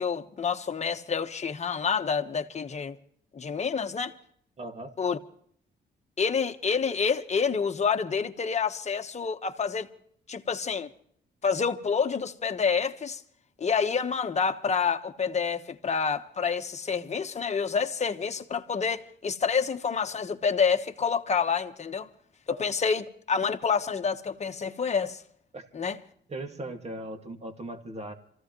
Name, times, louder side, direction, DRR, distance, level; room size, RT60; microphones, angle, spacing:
voice 1, 0.0-3.0 3.3-4.2 5.0-5.2 6.2-9.9 10.3-10.9 11.4-13.2 13.6-22.1 22.6-25.2 25.7-26.0, left 6 dB, 35° left, 1.3 m, -28 dB
voice 2, 4.6-4.9 22.5-22.7 25.5-25.6 26.3-28.1, right 1 dB, 35° right, 2.2 m, -38 dB
27.0 x 15.5 x 3.1 m
cardioid pair, 90°, 20 cm